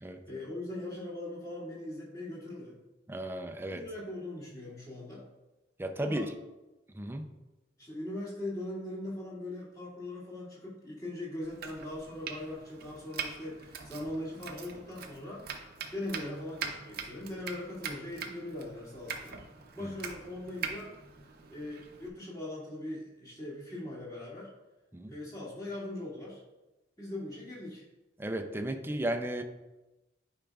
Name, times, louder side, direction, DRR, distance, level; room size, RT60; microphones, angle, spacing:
voice 1, 0.2-2.8 3.6-5.2 6.0-6.3 7.8-19.4 19.7-20.9 21.5-24.5 25.1-26.4 27.0-27.8, left 1 dB, 20° left, -8 dB, 2.4 m, -40 dB
voice 2, 3.1-3.8 5.8-6.3 6.9-7.3 19.8-19.9 24.9-25.2 28.2-29.4, right 1 dB, 15° right, 5 dB, 0.5 m, -34 dB
Domestic sounds home sounds, 11.4-22.1, right 6 dB, 55° right, 0.7 m, -43 dB
10.5 x 4.9 x 2.4 m, 1.1 s
head